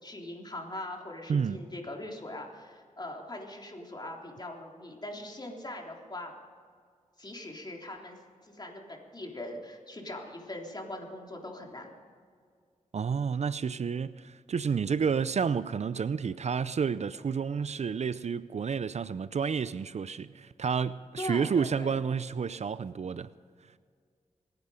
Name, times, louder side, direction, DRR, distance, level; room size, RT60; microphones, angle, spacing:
voice 1, 0.0-6.3 7.2-8.2 8.4-11.9 21.2-21.9, left 1 dB, 35° left, 3.4 m, -41 dB
voice 2, 12.9-23.3, right 6 dB, 60° right, 0.5 m, -30 dB
25.0 x 9.9 x 5.1 m
cardioid pair, 60°, 13 cm